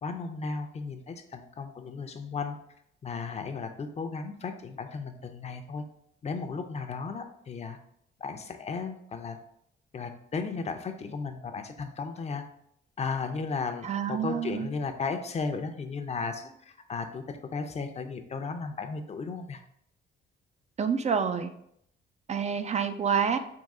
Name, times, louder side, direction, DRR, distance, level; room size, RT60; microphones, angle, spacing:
voice 1, 0.0-2.6 3.0-5.8 6.2-7.8 8.2-9.4 9.9-12.4 13.0-19.6, left 4 dB, 35° left, 6 dB, 0.6 m, -35 dB
voice 2, 13.8-14.7 20.8-21.5 22.3-23.4, right 7 dB, 35° right, 8 dB, 0.4 m, -28 dB
3.7 x 2.9 x 4.1 m, 0.72 s
cardioid pair, 90°, 20 cm